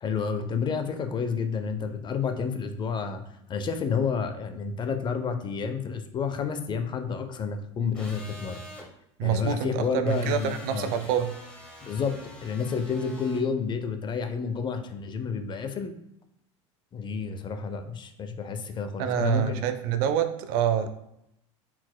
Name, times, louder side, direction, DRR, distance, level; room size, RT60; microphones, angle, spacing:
voice 1, 0.0-3.2 3.5-8.6 9.2-10.9 11.8-16.0 16.9-19.7, left 5 dB, 30° left, 8 dB, 0.5 m, -30 dB
sound 1, 7.9-8.9 10.1-13.4, left 1 dB, 5° left, 1.1 m, -46 dB
voice 2, 9.2-11.3 19.0-20.9, right 9 dB, 60° right, 10 dB, 0.5 m, -26 dB
4.2 x 4.1 x 2.2 m, 0.80 s
hypercardioid pair, 85°, 16 cm